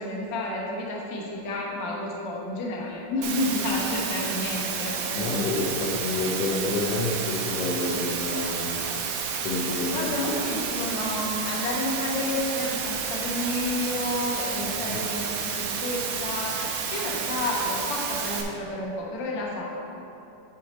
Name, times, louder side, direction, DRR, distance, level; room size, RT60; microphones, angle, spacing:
voice 1, 0.0-5.8 9.9-16.6 16.9-19.6, left 2 dB, 65° left, -3 dB, 1.1 m, -30 dB
Water, 3.2-18.4, right 6 dB, 85° right, 2.1 m, -30 dB
voice 2, 5.1-8.8 9.4-10.1 14.6-15.0, left 2 dB, 85° left, -3 dB, 1.3 m, -29 dB
10.0 x 4.6 x 4.2 m, 2.9 s
omnidirectional pair, 3.7 m